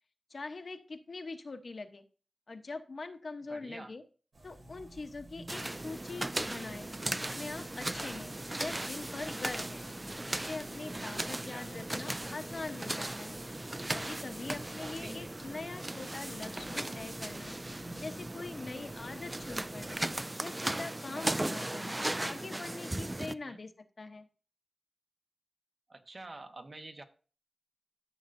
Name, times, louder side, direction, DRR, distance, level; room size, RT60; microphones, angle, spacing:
voice 1, 0.3-2.0 2.5-4.0 4.4-6.9 7.2-9.8 10.3-13.4 13.9-17.6 18.0-20.0 20.4-23.7 24.0-24.3, left 3 dB, 60° left, 7 dB, 0.9 m, -43 dB
voice 2, 3.5-3.9 11.3-11.7 14.8-15.3 23.2-23.6 25.9-27.0, right 2 dB, 50° right, 5 dB, 1.1 m, -48 dB
sound 1, 4.3-20.2, right 1 dB, 70° right, 2.8 m, -54 dB
sound 2, 5.5-23.3, right 1 dB, 20° right, 0.3 m, -37 dB
13.0 x 6.4 x 2.6 m, 0.37 s
wide cardioid pair, 80°, 0 cm